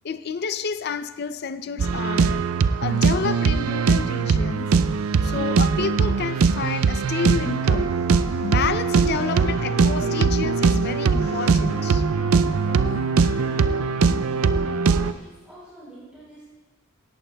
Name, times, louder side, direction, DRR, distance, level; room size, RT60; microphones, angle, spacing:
voice 1, 0.0-2.5 2.8-4.7 5.2-8.0 8.4-12.0, left 5 dB, 50° left, 0.4 m, -29 dB
sound 1, 1.8-15.1, right 5 dB, 80° right, 0.4 m, -21 dB
sound 2, 7.2-15.2, left 2 dB, 65° left, 1.7 m, -39 dB
voice 2, 12.6-13.7 14.3-16.4, right 1 dB, 5° right, 4.0 m, -48 dB
17.5 x 14.0 x 2.3 m
head